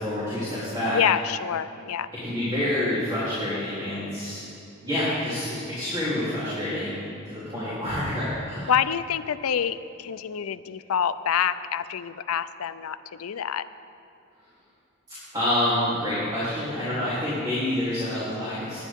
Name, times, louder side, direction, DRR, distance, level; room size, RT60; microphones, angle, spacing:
voice 1, 0.0-1.0 2.2-4.4 4.8-7.0 7.2-8.7 15.3-18.8, left 1 dB, 20° right, -11 dB, 3.2 m, -27 dB
voice 2, 0.9-2.1 8.7-13.6, left 8 dB, 85° left, 13 dB, 0.5 m, -27 dB
19.0 x 10.0 x 3.6 m, 2.8 s
head